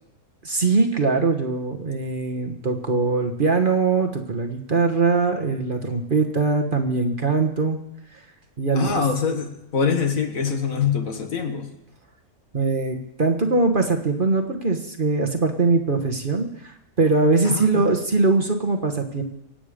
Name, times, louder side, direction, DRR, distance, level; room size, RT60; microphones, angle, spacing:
voice 1, 0.4-7.8 8.1-8.2 8.6-9.1 12.5-19.2, right 3 dB, 35° right, 4 dB, 1.4 m, -22 dB
voice 2, 8.8-11.7 17.5-17.9, left 6 dB, 65° left, 5 dB, 1.9 m, -24 dB
25.0 x 9.0 x 5.1 m, 0.81 s
omnidirectional pair, 1.6 m